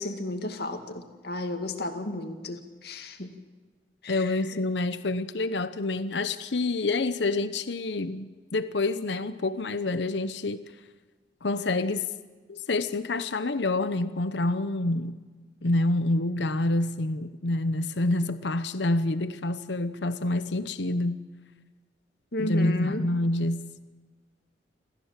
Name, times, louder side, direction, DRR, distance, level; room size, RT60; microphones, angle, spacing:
voice 1, 0.0-3.3 4.0-4.4 22.3-23.0, left 2 dB, 65° left, 6 dB, 2.1 m, -33 dB
voice 2, 4.1-10.6 11.4-12.0 12.5-15.2 15.6-21.2 22.4-23.6, left 2 dB, 80° left, 12 dB, 0.9 m, -27 dB
27.5 x 14.5 x 7.5 m, 1.4 s
head